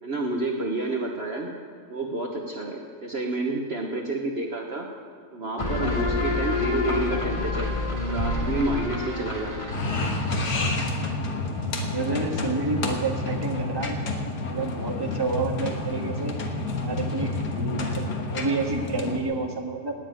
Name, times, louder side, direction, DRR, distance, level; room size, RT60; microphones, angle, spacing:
voice 1, 0.0-1.5 1.9-4.9 5.3-9.5, right 2 dB, 45° right, 1 dB, 1.3 m, -29 dB
sound 1, 5.6-12.9, left 2 dB, 20° left, 2.0 m, -29 dB
sound 2, 9.7-19.2, left 2 dB, 85° left, 2.0 m, -29 dB
voice 2, 11.9-14.0 14.5-16.3 16.8-18.0 18.3-19.9, right 3 dB, 15° right, 1 dB, 1.5 m, -29 dB
18.5 x 7.3 x 9.1 m, 2.2 s
omnidirectional pair, 1.7 m